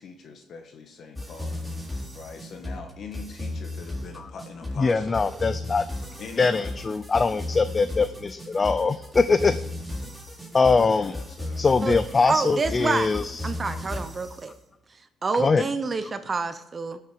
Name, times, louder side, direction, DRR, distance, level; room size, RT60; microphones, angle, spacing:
voice 1, 0.0-1.6 2.1-5.2 6.2-6.8 10.8-11.6, left 4 dB, 60° left, 5 dB, 1.5 m, -42 dB
sound 1, 1.2-14.4, left 1 dB, 5° left, 3.5 m, -35 dB
voice 2, 4.8-5.9 6.4-9.6 10.5-11.2 11.6-13.8 15.4-15.7, left 4 dB, 30° left, 12 dB, 0.5 m, -22 dB
voice 3, 12.3-13.1 13.4-14.5 15.2-17.0, right 4 dB, 35° right, 10 dB, 0.8 m, -27 dB
17.0 x 6.6 x 6.9 m, 0.88 s
cardioid pair, 90°, 0 cm